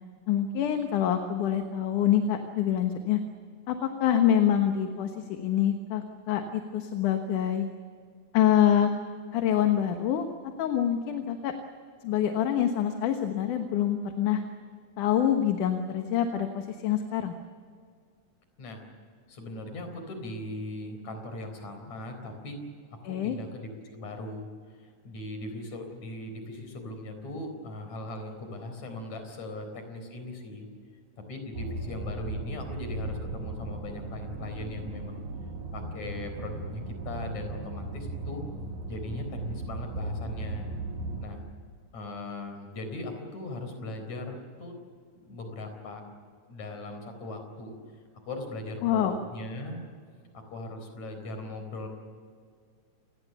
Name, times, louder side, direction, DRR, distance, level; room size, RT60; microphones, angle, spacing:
voice 1, 0.3-3.2 3.7-7.7 8.3-8.9 9.3-10.3 10.6-11.5 12.0-14.4 15.0-17.3 23.0-23.4 48.8-49.2, left 10 dB, 80° left, 6 dB, 2.8 m, -26 dB
voice 2, 19.3-22.6 22.9-30.7 31.3-35.2 35.7-38.4 38.9-40.7 41.2-41.4 41.9-44.7 45.1-46.0 46.5-47.7 48.3-49.8 50.5-51.9, left 2 dB, 60° left, 6 dB, 5.4 m, -39 dB
sound 1, 31.5-41.3, right 2 dB, 70° right, 3.5 m, -36 dB
28.0 x 20.5 x 7.0 m, 2.1 s
omnidirectional pair, 3.6 m